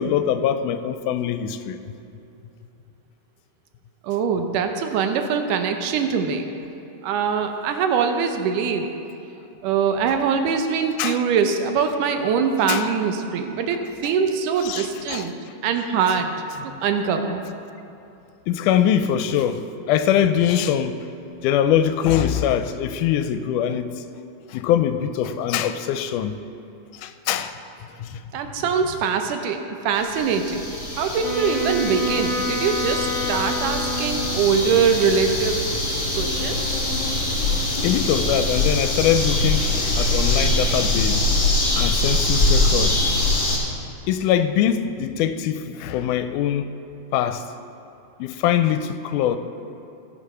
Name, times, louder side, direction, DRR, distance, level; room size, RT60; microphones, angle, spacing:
voice 1, 0.0-1.8 11.0-11.2 12.7-12.9 14.6-15.3 16.7-16.8 18.5-19.6 19.9-21.0 21.4-23.9 24.5-26.4 26.9-27.5 28.0-28.2 37.8-41.3 41.7-43.0 44.1-46.7 47.1-47.4 48.2-49.4, left 9 dB, 80° left, 10 dB, 2.0 m, -22 dB
voice 2, 4.0-6.5 7.0-8.9 9.6-15.3 15.6-16.3 16.6-17.4 28.3-30.7 31.0-36.8, right 6 dB, 80° right, 6 dB, 2.3 m, -23 dB
sound 1, 30.0-43.6, left 2 dB, 25° left, 2.2 m, -23 dB
Wind instrument woodwind instrument, 31.2-34.8, left 1 dB, 65° right, 3.7 m, -28 dB
16.5 x 6.1 x 5.6 m, 2.8 s
omnidirectional pair, 3.7 m